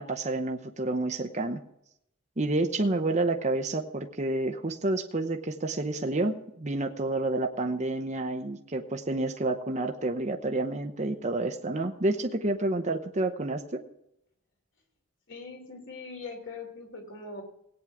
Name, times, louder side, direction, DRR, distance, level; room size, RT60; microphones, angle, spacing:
voice 1, 0.0-1.6 2.4-13.8, right 2 dB, 30° right, 5 dB, 0.8 m, -29 dB
voice 2, 15.3-17.4, left 3 dB, 55° left, 3 dB, 3.1 m, -41 dB
17.5 x 9.1 x 3.6 m, 0.78 s
head